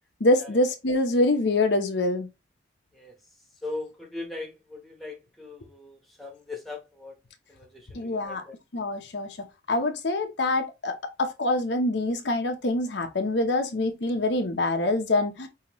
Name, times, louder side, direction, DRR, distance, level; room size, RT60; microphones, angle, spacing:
voice 1, 0.2-2.3 7.9-8.4 8.7-9.3 9.7-15.5, left 2 dB, 75° left, 0.8 m, -25 dB
voice 2, 3.6-7.1 7.5-8.5, left 3 dB, ahead, 1.0 m, -39 dB
5.5 x 2.8 x 3.0 m
head